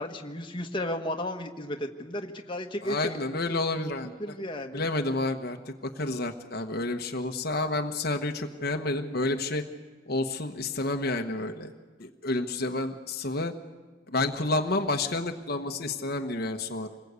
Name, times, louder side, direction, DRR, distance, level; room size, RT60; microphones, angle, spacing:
voice 1, 0.0-3.2 4.2-4.9, left 1 dB, 25° left, 3 dB, 1.5 m, -34 dB
voice 2, 2.8-4.1 4.7-9.6 10.1-11.7 12.0-13.5 14.1-16.9, left 2 dB, 55° left, 4 dB, 1.2 m, -30 dB
27.0 x 21.0 x 8.3 m, 1.4 s
head